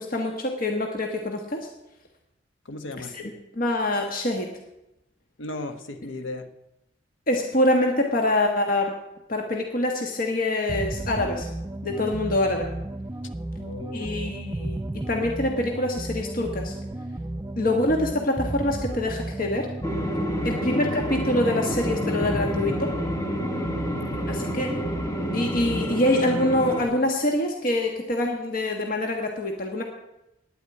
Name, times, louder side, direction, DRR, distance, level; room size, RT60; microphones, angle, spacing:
voice 1, 0.0-1.7 3.0-3.3 3.5-4.5 7.3-8.9 9.3-11.5 11.8-12.7 13.9-14.8 15.1-16.7 17.6-19.7 20.4-22.9 24.3-24.7 25.3-29.8, left 1 dB, 50° left, 2 dB, 1.4 m, -25 dB
voice 2, 2.6-3.1 5.4-6.5 13.6-14.4 20.4-20.7 23.8-24.5, left 2 dB, 90° left, 7 dB, 1.1 m, -37 dB
sound 1, 10.7-26.0, right 1 dB, 15° right, 0.4 m, -33 dB
sound 2, 19.8-26.8, equal, 15° left, 1.4 m, -29 dB
9.9 x 8.3 x 9.5 m, 0.90 s
head